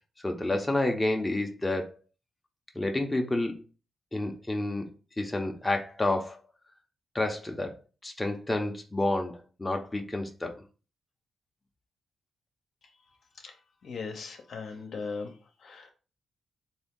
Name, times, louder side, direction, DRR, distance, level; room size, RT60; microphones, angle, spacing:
voice 1, 0.2-2.0 2.7-3.6 4.1-4.8 5.2-6.4 7.1-7.7 8.0-10.6, left 2 dB, 15° left, 3 dB, 0.7 m, -29 dB
voice 2, 13.8-15.3 15.6-15.9, left 4 dB, 70° left, 4 dB, 0.7 m, -38 dB
3.5 x 2.7 x 3.7 m, 0.35 s
cardioid pair, 70°, 0 cm